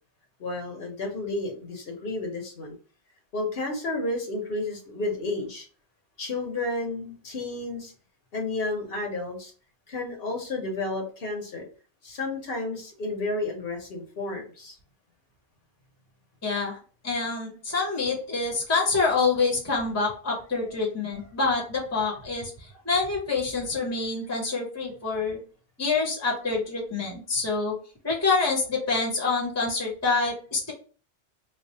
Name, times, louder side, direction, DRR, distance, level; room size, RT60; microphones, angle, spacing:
voice 1, 0.4-2.8 3.3-5.7 6.2-7.9 8.3-9.5 9.9-11.7 12.0-14.7 18.0-18.1, left 2 dB, 55° left, 2 dB, 1.1 m, -31 dB
voice 2, 16.4-16.8 17.0-22.5 22.8-25.4 25.8-27.7 28.0-30.7, left 4 dB, 15° left, -2 dB, 0.9 m, -26 dB
3.2 x 2.1 x 4.1 m, 0.39 s
omnidirectional pair, 1.2 m